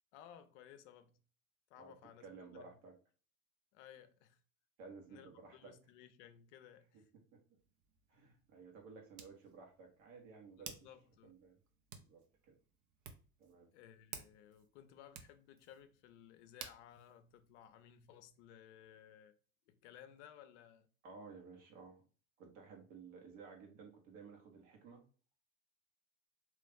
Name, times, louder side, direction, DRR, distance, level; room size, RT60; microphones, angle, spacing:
voice 1, 0.1-1.2 1.7-2.3 2.5-2.7 3.7-4.4 5.1-7.1 10.5-11.4 13.7-19.3 19.7-20.9, left 10 dB, 55° left, 0.6 m, -59 dB
voice 2, 2.2-2.9 4.8-5.7 7.3-7.4 8.1-10.8 11.2-11.5 11.9-12.2 12.5-12.6 13.4-13.7 21.0-22.0 22.4-25.0, right 4 dB, 60° right, 1.5 m, -55 dB
Hands, 7.6-18.3, right 7 dB, 45° right, 0.8 m, -57 dB
3.3 x 3.0 x 3.6 m
hypercardioid pair, 85°, 43 cm